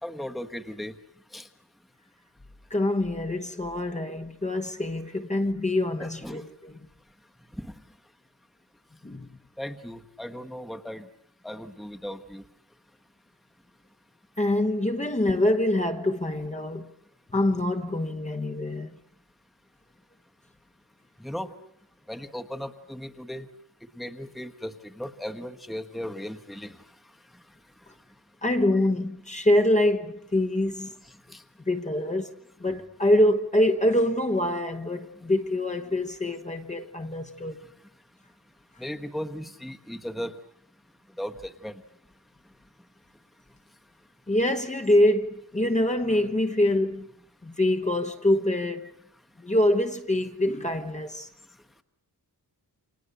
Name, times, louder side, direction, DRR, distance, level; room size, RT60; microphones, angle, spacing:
voice 1, 0.0-0.9 1.3-1.5 6.0-6.4 7.6-7.7 9.6-11.1 11.4-12.4 21.2-21.5 22.1-23.5 24.0-26.8 31.3-31.4 38.8-40.4 41.2-41.8, equal, ahead, 1.2 m, -36 dB
voice 2, 2.7-6.8 9.0-9.3 14.4-16.9 17.3-18.9 28.4-30.9 31.7-32.3 32.6-37.6 44.3-47.1 47.4-48.9 49.4-51.3, left 1 dB, 20° left, 1.1 m, -25 dB
30.0 x 27.5 x 6.8 m
wide cardioid pair, 175°, 38 cm